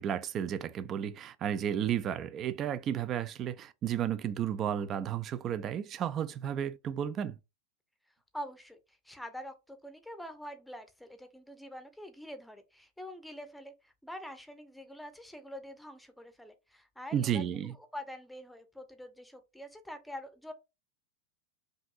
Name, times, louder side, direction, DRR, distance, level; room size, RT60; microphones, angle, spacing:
voice 1, 0.0-7.4 17.1-17.7, right 9 dB, 30° right, 0.4 m, -33 dB
voice 2, 8.3-17.5 17.9-20.5, equal, ahead, 0.7 m, -45 dB
5.2 x 2.6 x 2.4 m
figure-of-eight pair, 90°, 0 cm